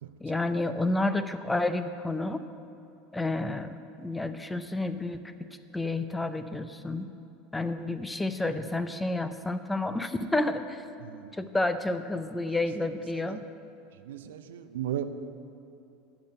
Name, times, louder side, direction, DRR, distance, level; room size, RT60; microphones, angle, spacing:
voice 1, 0.2-2.4 3.1-3.7 4.0-5.3 5.7-7.1 7.5-10.8 11.4-13.4, left 2 dB, 10° left, 11 dB, 0.6 m, -30 dB
voice 2, 11.0-11.3 12.5-13.4 13.9-15.0, right 11 dB, 70° right, 10 dB, 0.6 m, -37 dB
13.5 x 5.2 x 8.0 m, 2.6 s
figure-of-eight pair, 75°, 0 cm